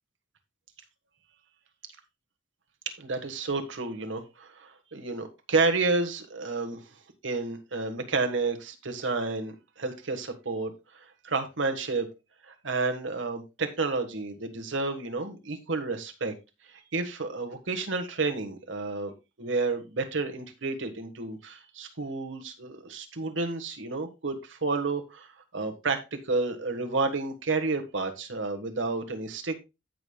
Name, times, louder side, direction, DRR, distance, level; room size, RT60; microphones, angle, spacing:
voice 1, 2.8-6.8 7.2-12.1 12.5-16.3 16.7-19.1 19.4-29.6, right 3 dB, 85° right, 1.5 m, -31 dB
15.5 x 5.5 x 2.3 m
head